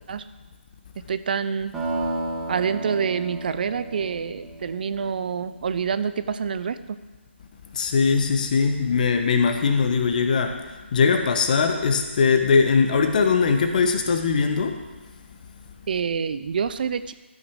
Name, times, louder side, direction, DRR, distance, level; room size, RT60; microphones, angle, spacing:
voice 1, 1.1-1.7 2.5-7.0 15.9-17.1, right 6 dB, 45° right, 13 dB, 0.6 m, -27 dB
sound 1, 1.7-6.0, right 2 dB, 5° right, 3.0 m, -33 dB
voice 2, 7.7-14.8, left 5 dB, 40° left, 5 dB, 1.3 m, -21 dB
13.5 x 6.5 x 6.3 m, 1.2 s
figure-of-eight pair, 150°, 7 cm